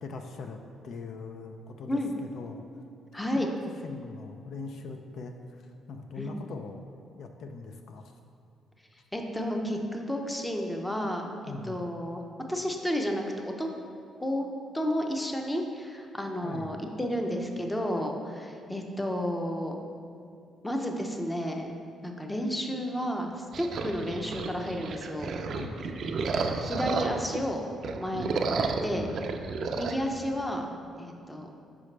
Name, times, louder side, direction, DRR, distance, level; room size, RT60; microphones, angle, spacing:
voice 1, 0.0-2.0 2.3-2.6 3.3-3.5 3.8-6.8 7.2-8.1 11.5-11.8 16.4-16.7 25.5-25.8, left 4 dB, 70° left, 5 dB, 0.4 m, -41 dB
voice 2, 3.1-3.5 6.2-6.3 9.1-11.3 11.6-12.2 12.5-13.7 14.2-14.5 14.7-19.8 20.6-21.7 22.0-25.3 26.4-27.6 28.0-29.1 29.8-30.7 31.0-31.5, equal, 10° left, 3 dB, 0.6 m, -31 dB
sound 1, 23.5-27.4 27.8-30.0, right 4 dB, 60° right, 0.4 m, -32 dB
6.1 x 4.9 x 3.2 m, 2.4 s
cardioid pair, 90°, 0 cm